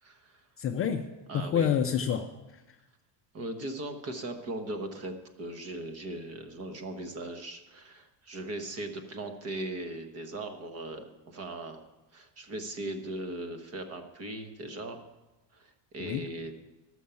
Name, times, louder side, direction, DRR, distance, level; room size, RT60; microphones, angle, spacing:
voice 1, 0.0-0.4 1.3-1.7 3.3-15.0 15.5-16.5, right 1 dB, 30° right, 7 dB, 1.1 m, -39 dB
voice 2, 0.6-1.0 1.3-2.8 16.0-16.3, left 8 dB, 30° left, 4 dB, 0.5 m, -29 dB
13.0 x 6.4 x 6.9 m, 1.0 s
cardioid pair, 160°, 45 cm